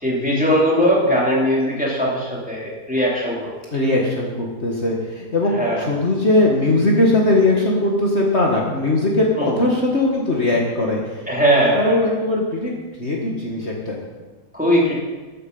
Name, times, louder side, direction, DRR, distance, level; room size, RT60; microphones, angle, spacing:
voice 1, 0.0-3.5 5.5-5.9 9.4-9.6 11.3-12.1 14.5-14.9, equal, 5° right, -4 dB, 3.0 m, -19 dB
voice 2, 3.7-11.2 11.5-12.7 13.0-14.0, left 2 dB, 45° left, -2 dB, 1.7 m, -20 dB
14.5 x 9.0 x 5.3 m, 1.3 s
omnidirectional pair, 1.7 m